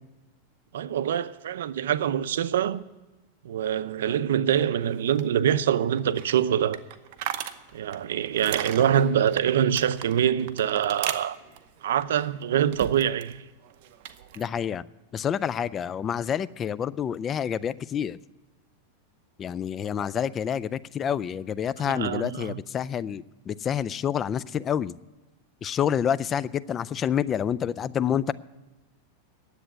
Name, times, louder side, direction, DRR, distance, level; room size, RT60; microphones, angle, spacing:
voice 1, 0.7-2.8 3.4-6.8 7.7-11.4 11.8-13.4 21.8-22.6, right 9 dB, 85° right, 0.6 m, -25 dB
sound 1, 4.8-13.3 13.6-14.5, right 11 dB, 60° right, 0.8 m, -39 dB
sound 2, 7.5-7.8 8.4-11.7 12.7-12.8, right 4 dB, 40° right, 2.3 m, -50 dB
voice 2, 14.4-14.8 15.1-18.2 19.4-24.9 25.6-28.3, left 8 dB, 25° left, 0.4 m, -28 dB
10.0 x 8.0 x 9.8 m
supercardioid pair, 130°, 0 cm